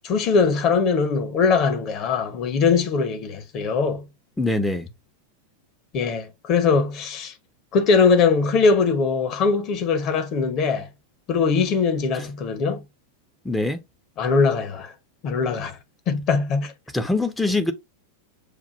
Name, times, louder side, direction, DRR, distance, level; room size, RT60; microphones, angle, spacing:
voice 1, 0.0-4.0 5.9-7.3 7.7-10.9 11.3-12.8 14.2-14.9 15.2-15.8 16.1-16.7, left 5 dB, 35° left, 0.9 m, -21 dB
voice 2, 4.4-4.9 12.1-12.3 13.4-13.8 16.9-17.7, left 2 dB, 5° left, 0.6 m, -23 dB
6.6 x 2.5 x 2.5 m
figure-of-eight pair, 90°, 0 cm